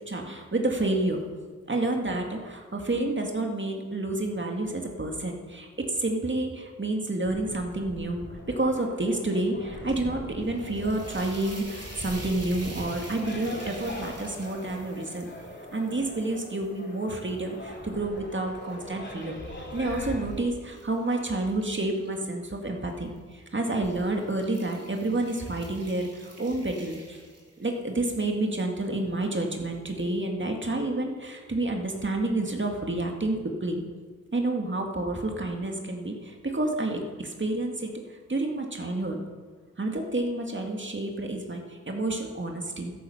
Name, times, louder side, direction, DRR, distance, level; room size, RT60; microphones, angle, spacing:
voice 1, 0.1-1.2 1.7-15.3 15.7-19.4 19.7-27.2 27.6-33.8 34.3-39.2 39.8-42.9, right 2 dB, 40° right, 2 dB, 2.1 m, -29 dB
sound 1, 7.2-20.3, left 1 dB, 40° left, 3.0 m, -41 dB
sound 2, 10.4-17.6 18.2-22.1 23.0-23.3 23.7-27.9, right 2 dB, 55° right, 3.3 m, -48 dB
13.5 x 11.5 x 5.8 m, 1.5 s
wide cardioid pair, 55°, 29 cm